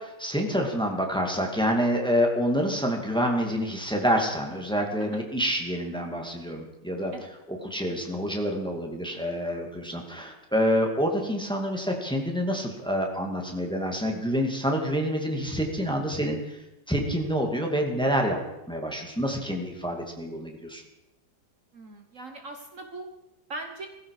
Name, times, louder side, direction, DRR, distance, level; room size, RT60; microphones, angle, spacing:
voice 1, 0.0-7.1 7.5-16.6 16.9-18.4 18.7-20.8, equal, 5° left, 2 dB, 2.2 m, -27 dB
voice 2, 21.7-23.1 23.5-23.9, right 2 dB, 50° right, 5 dB, 1.4 m, -40 dB
18.0 x 15.5 x 4.9 m, 0.92 s
omnidirectional pair, 1.8 m